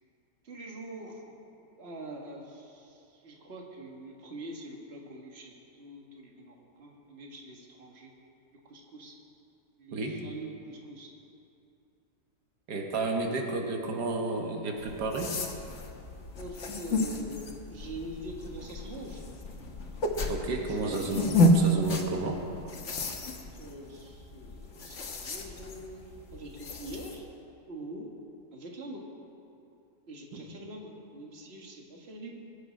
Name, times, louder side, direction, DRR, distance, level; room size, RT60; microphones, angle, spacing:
voice 1, 0.4-8.1 8.7-9.2 9.8-11.1 16.4-19.2 20.6-21.1 23.6-26.0 26.3-27.3 27.7-28.1 28.5-29.0 30.1-32.3, right 1 dB, 40° right, 0 dB, 1.8 m, -44 dB
voice 2, 9.9-10.2 12.7-15.3 20.3-22.4 30.3-30.5, right 3 dB, 85° right, 2 dB, 1.8 m, -32 dB
sound 1, 14.8-27.2, left 1 dB, 50° left, 1.4 m, -31 dB
22.0 x 7.7 x 5.2 m, 2.7 s
omnidirectional pair, 1.7 m